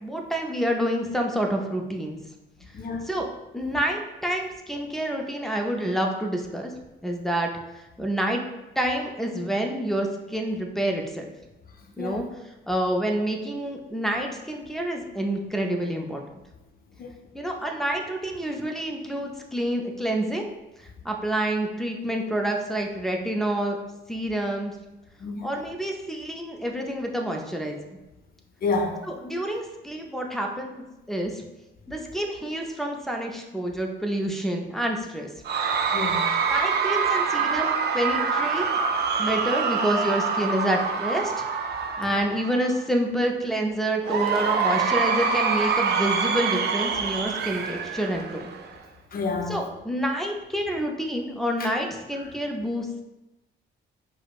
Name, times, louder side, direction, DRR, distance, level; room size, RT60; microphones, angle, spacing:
voice 1, 0.0-2.2 3.0-3.3 3.5-6.7 7.0-8.4 8.8-11.3 12.0-12.3 12.7-16.2 17.3-20.4 20.8-23.8 24.1-24.8 25.4-27.8 29.1-31.4 31.9-35.3 36.5-38.7 39.2-41.4 42.0-48.5 49.5-53.0, right 1 dB, ahead, 2 dB, 0.4 m, -28 dB
voice 2, 2.7-3.1 12.0-12.2 17.0-17.1 25.2-25.5 28.6-29.0 35.9-36.3 42.0-42.2 49.1-49.6 51.6-51.7, left 3 dB, 50° left, 3 dB, 0.6 m, -29 dB
Cheering / Crowd, 35.4-42.8 44.0-48.8, right 5 dB, 55° right, 0.4 m, -25 dB
4.9 x 2.1 x 2.3 m, 1.0 s
cardioid pair, 90°, 20 cm